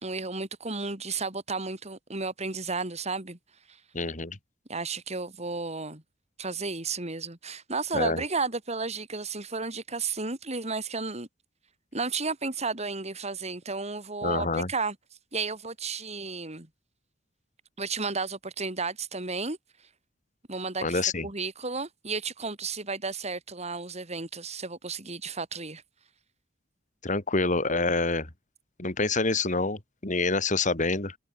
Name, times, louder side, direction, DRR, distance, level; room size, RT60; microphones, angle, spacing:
voice 1, 0.0-3.4 4.7-6.0 6.4-11.3 11.9-15.0 15.3-16.7 17.8-19.6 20.5-25.8, right 4 dB, 35° right, 3.7 m, -33 dB
voice 2, 3.9-4.4 7.9-8.2 14.2-14.7 20.8-21.3 27.0-28.3 28.8-31.2, left 3 dB, 45° left, 3.0 m, -27 dB
head